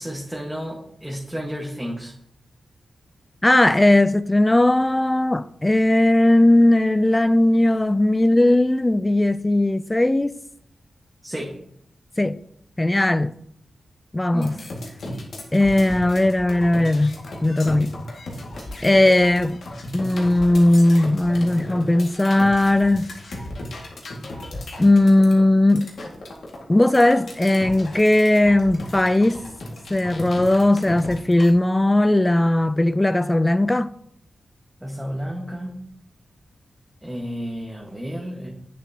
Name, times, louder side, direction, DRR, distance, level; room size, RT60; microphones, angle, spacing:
voice 1, 0.0-2.1 11.2-11.6 14.3-14.6 34.8-35.8 37.0-38.5, equal, 10° right, 1.4 m, -32 dB
voice 2, 3.4-10.4 12.2-12.4 12.8-13.3 14.1-14.6 15.5-18.0 18.8-19.6 19.9-23.1 24.8-25.9 26.7-29.4 29.9-33.9, left 1 dB, 20° left, 0.3 m, -18 dB
sound 1, 14.4-31.5, left 1 dB, 75° left, 1.9 m, -36 dB
8.6 x 7.2 x 2.9 m
cardioid pair, 65°, 0 cm